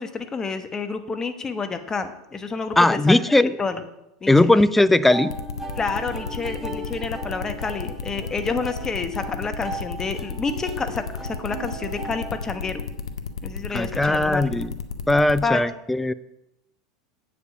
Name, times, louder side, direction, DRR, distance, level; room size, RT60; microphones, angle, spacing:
voice 1, 0.0-3.8 4.2-4.6 5.8-12.8 13.4-14.6 15.4-15.6, left 4 dB, 25° left, 9 dB, 1.0 m, -29 dB
voice 2, 2.8-3.6 4.3-5.3 13.7-14.7 15.1-16.1, left 2 dB, 5° left, 15 dB, 0.4 m, -18 dB
sound 1, 5.1-13.0, right 2 dB, 10° right, 1.9 m, -37 dB
sound 2, 5.3-15.4, left 6 dB, 90° left, 0.7 m, -32 dB
8.0 x 5.1 x 7.1 m, 0.87 s
hypercardioid pair, 90°, 2 cm